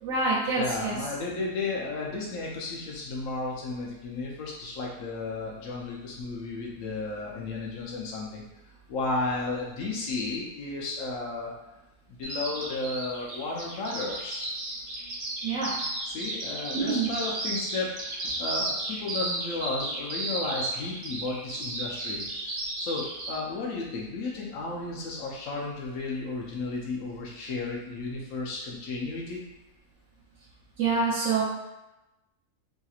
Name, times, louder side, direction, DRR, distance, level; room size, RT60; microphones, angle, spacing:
voice 1, 0.0-1.0 15.0-15.1 15.4-15.7 16.7-17.1 30.8-31.4, right 4 dB, 70° right, -8 dB, 0.9 m, -26 dB
voice 2, 0.6-8.4 8.9-11.5 12.1-14.5 16.0-22.2 22.8-29.4, left 3 dB, 75° left, -3 dB, 1.0 m, -33 dB
Bird vocalization bird call bird song, 12.2-23.3, right 2 dB, 85° right, 1.2 m, -34 dB
3.1 x 2.8 x 2.4 m, 0.97 s
omnidirectional pair, 1.4 m